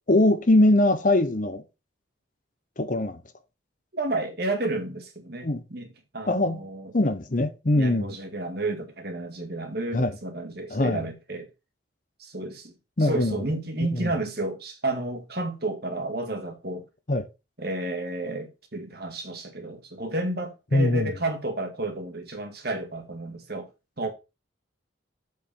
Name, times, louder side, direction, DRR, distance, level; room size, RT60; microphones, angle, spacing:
voice 1, 0.1-1.6 2.8-3.2 5.4-5.6 6.3-6.6 6.9-8.2 9.9-10.1 10.7-11.0 13.0-13.3 13.9-14.1 17.1-17.3 20.7-21.1, left 1 dB, 40° left, 0.8 m, -22 dB
voice 2, 3.9-6.9 7.7-11.5 12.2-12.7 13.0-16.8 17.6-23.7 24.0-24.1, right 2 dB, 50° right, 1.9 m, -31 dB
7.8 x 5.1 x 5.1 m
head